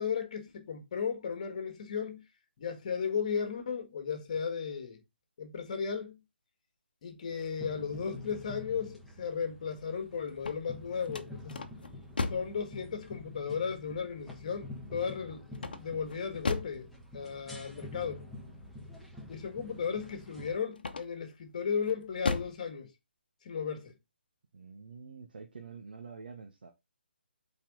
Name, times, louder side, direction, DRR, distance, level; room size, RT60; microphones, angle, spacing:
voice 1, 0.0-2.2 2.6-5.0 5.4-6.2 7.0-11.5 12.3-15.5 15.8-16.9 17.1-18.2 19.3-22.9 23.4-23.9, left 6 dB, 40° left, 1.8 m, -35 dB
sound 1, 7.3-20.6, left 2 dB, ahead, 1.2 m, -47 dB
sound 2, 10.3-12.6 15.5-16.8 20.7-21.3 21.8-22.6, left 4 dB, 55° left, 1.1 m, -36 dB
voice 2, 19.6-19.9 24.5-26.7, right 5 dB, 60° right, 1.2 m, -47 dB
8.6 x 4.2 x 3.9 m
figure-of-eight pair, 140°, 6 cm